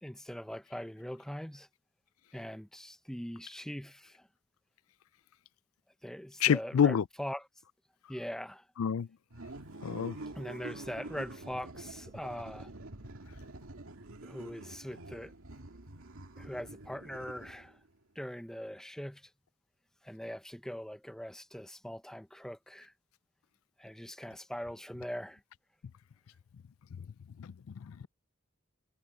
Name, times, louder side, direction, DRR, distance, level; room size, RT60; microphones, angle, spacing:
voice 1, 0.0-1.7 2.3-4.3 6.0-7.4 8.1-8.6 10.3-12.7 14.2-15.3 16.4-17.8 18.2-19.3 20.0-22.9 23.8-25.4, equal, ahead, 0.7 m, -41 dB
voice 2, 6.4-7.0 8.8-9.1 9.8-10.2 27.4-27.5 27.8-28.1, left 8 dB, 85° left, 0.4 m, -27 dB
sound 1, 9.3-17.9, right 2 dB, 80° right, 2.1 m, -47 dB
head